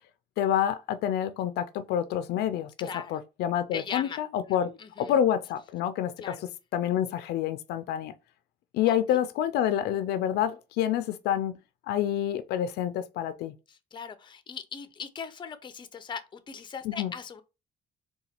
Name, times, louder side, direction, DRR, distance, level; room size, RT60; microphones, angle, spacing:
voice 1, 0.4-4.7 5.0-8.1 8.7-11.6 11.9-13.5 16.8-17.1, left 10 dB, 75° left, 0.4 m, -28 dB
voice 2, 2.8-3.2 3.7-4.2 4.5-5.2 6.2-6.4 8.9-9.2 13.7-17.4, left 6 dB, 25° left, 0.6 m, -40 dB
3.9 x 2.3 x 4.3 m
cardioid pair, 110°, 17 cm